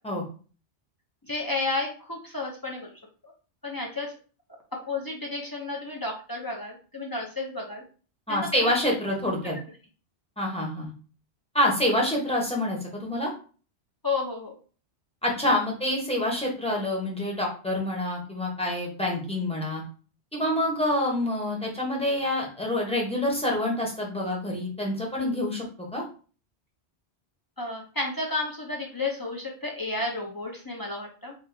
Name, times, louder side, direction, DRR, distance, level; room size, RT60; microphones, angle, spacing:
voice 1, 1.2-2.9 3.6-4.1 4.9-7.8 8.3-8.8 14.0-14.6 27.6-31.4, left 3 dB, 30° left, -1 dB, 0.4 m, -32 dB
voice 2, 8.3-9.6 10.4-10.9 11.5-13.3 15.2-19.8 20.3-26.0, left 1 dB, 5° left, -2 dB, 0.8 m, -27 dB
2.9 x 2.5 x 3.7 m, 0.39 s
omnidirectional pair, 1.1 m